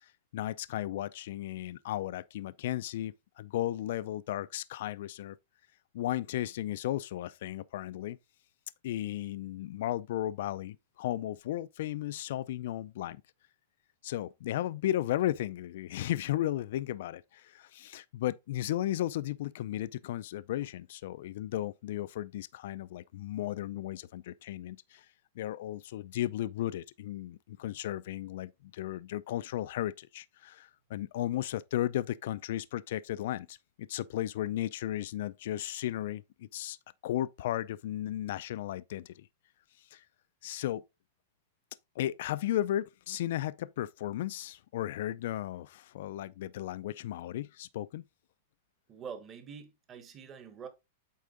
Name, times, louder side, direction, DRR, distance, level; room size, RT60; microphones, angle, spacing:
voice 1, 0.0-5.4 5.9-8.2 8.8-13.2 14.0-25.1 25.4-36.8 37.0-39.3 39.9-40.0 40.4-40.8 42.0-48.0, left 13 dB, 60° left, 0.4 m, -35 dB
voice 2, 48.9-50.7, right 7 dB, 20° right, 1.2 m, -45 dB
8.4 x 3.8 x 3.8 m
supercardioid pair, 160°, 0 cm